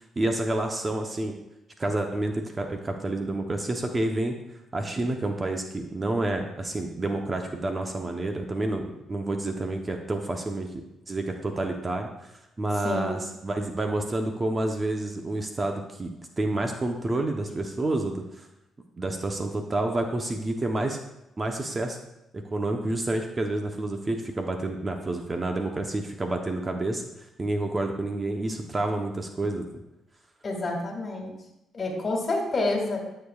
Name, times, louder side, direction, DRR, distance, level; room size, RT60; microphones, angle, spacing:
voice 1, 0.2-1.3 1.8-4.3 4.7-12.3 12.6-16.1 16.4-18.5 19.0-21.0 21.4-22.0 22.5-27.0 27.4-29.7, right 2 dB, 25° right, 4 dB, 0.9 m, -29 dB
voice 2, 12.8-13.2 30.4-31.3 31.7-33.0, left 2 dB, 40° left, 1 dB, 2.1 m, -28 dB
12.0 x 6.8 x 2.4 m, 0.88 s
cardioid pair, 90°, 0 cm